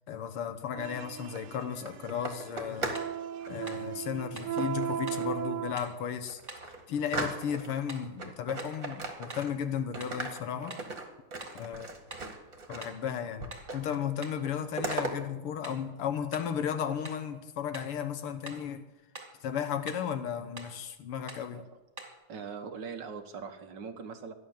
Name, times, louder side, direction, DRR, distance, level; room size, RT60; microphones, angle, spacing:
voice 1, 0.1-2.9 3.5-6.4 6.9-10.8 11.5-11.9 12.7-18.9 19.4-21.6, left 8 dB, 80° left, 10 dB, 2.1 m, -34 dB
sound 1, 0.7-5.7, right 11 dB, 85° right, 1.7 m, -37 dB
sound 2, 1.1-3.1 3.4-3.8 4.6-5.4 5.8-5.9 6.3-7.8 8.2-9.7 9.9-13.1 13.4-14.0 14.3-15.1, right 3 dB, 40° right, 2.2 m, -38 dB
sound 3, 2.9-3.2 3.7-3.9 4.4-4.6 5.1-5.3 5.8-6.0 6.5-6.7 7.2-7.4 7.9-8.1 8.6-8.8 9.3-9.5 10.0-10.2 10.7-10.9 11.4-11.7 12.1-12.3 12.8-13.1 13.5-13.7 14.2-14.4 14.9-15.1 15.6-15.9 16.3-16.6 17.0-17.3 17.7-18.0 18.4-18.7 19.1-19.4 19.8-20.1 20.6-20.8 21.3-21.5 22.0-22.2, right 2 dB, 15° right, 2.5 m, -46 dB
voice 2, 22.3-24.3, right 5 dB, 55° right, 7 dB, 1.8 m, -41 dB
15.0 x 10.5 x 7.2 m, 1.0 s
omnidirectional pair, 2.4 m